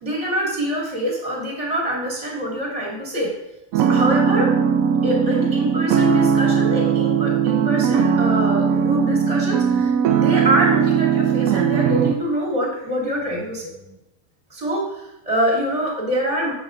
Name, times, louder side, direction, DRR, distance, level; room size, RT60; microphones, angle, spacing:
voice 1, 0.0-3.3 3.7-4.5 5.0-13.9 14.5-16.5, right 1 dB, 20° right, -3 dB, 2.0 m, -25 dB
sound 1, 3.7-12.1, right 7 dB, 70° right, 0.9 m, -19 dB
7.8 x 6.5 x 3.7 m, 0.88 s
omnidirectional pair, 1.6 m